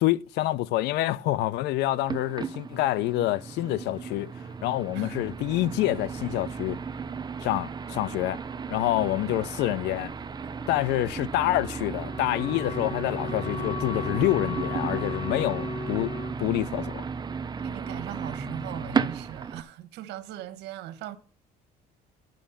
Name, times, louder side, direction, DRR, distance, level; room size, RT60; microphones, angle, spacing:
voice 1, 0.0-4.3 4.6-6.8 7.4-8.4 8.7-10.1 10.7-16.1 16.4-17.0, left 16 dB, 85° left, 0.5 m, -27 dB
sound 1, 2.1-19.6, right 5 dB, 25° right, 0.6 m, -34 dB
Wind instrument woodwind instrument, 12.0-16.4, left 4 dB, 35° left, 0.9 m, -37 dB
voice 2, 17.6-21.2, right 12 dB, 85° right, 1.1 m, -39 dB
9.3 x 6.3 x 7.0 m
cardioid pair, 110°, 17 cm